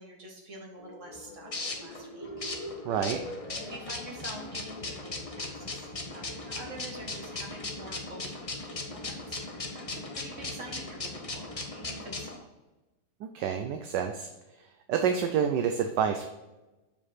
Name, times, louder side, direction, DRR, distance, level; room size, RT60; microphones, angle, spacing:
voice 1, 0.0-2.3 3.5-8.4 8.6-12.5, right 1 dB, 40° right, 0 dB, 1.8 m, -47 dB
sound 1, 0.8-12.3, left 2 dB, 40° left, 0.4 m, -38 dB
voice 2, 2.8-3.2 13.2-14.3 14.9-16.2, right 7 dB, 70° right, 6 dB, 1.1 m, -28 dB
7.1 x 5.1 x 4.2 m, 1.1 s
omnidirectional pair, 2.2 m